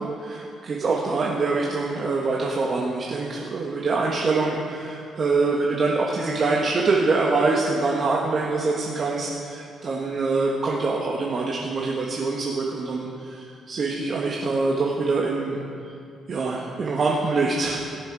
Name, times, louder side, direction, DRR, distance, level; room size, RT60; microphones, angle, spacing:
voice 1, 0.0-15.6 16.3-17.8, right 3 dB, 45° right, -3 dB, 1.4 m, -24 dB
20.5 x 6.9 x 4.8 m, 2.5 s
cardioid pair, 90°, 0 cm